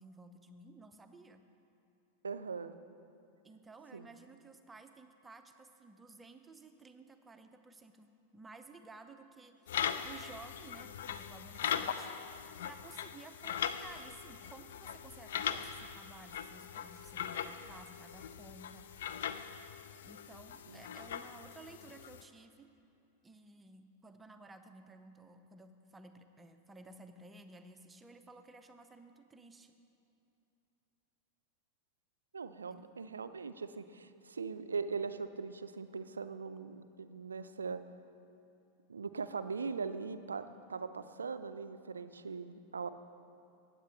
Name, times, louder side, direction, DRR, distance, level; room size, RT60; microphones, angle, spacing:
voice 1, 0.0-1.4 3.4-9.7 10.0-12.2 12.6-18.9 20.0-22.7 23.2-29.7 32.7-32.9, right 3 dB, 10° right, 7 dB, 0.6 m, -55 dB
voice 2, 2.2-2.7 3.9-4.1 20.7-20.8 32.3-37.8 38.9-42.9, right 5 dB, 75° right, 11 dB, 0.4 m, -40 dB
sound 1, 9.7-22.2, left 8 dB, 60° left, 0.4 m, -40 dB
15.5 x 8.7 x 3.1 m, 2.8 s
figure-of-eight pair, 90°, 0 cm